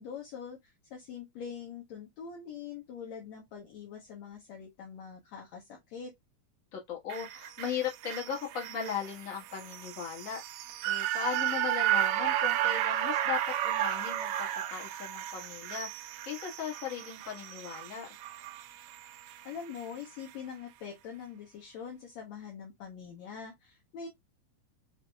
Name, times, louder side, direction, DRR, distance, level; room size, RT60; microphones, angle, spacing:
voice 1, 0.0-6.1 19.5-24.1, left 7 dB, 65° left, 2.1 m, -44 dB
voice 2, 6.7-10.4 10.8-14.3 14.7-15.9 16.2-18.1, left 8 dB, 35° left, 1.5 m, -37 dB
sound 1, 7.1-19.4 19.8-19.9, right 13 dB, 85° right, 1.5 m, -33 dB
6.1 x 2.8 x 2.3 m
omnidirectional pair, 3.7 m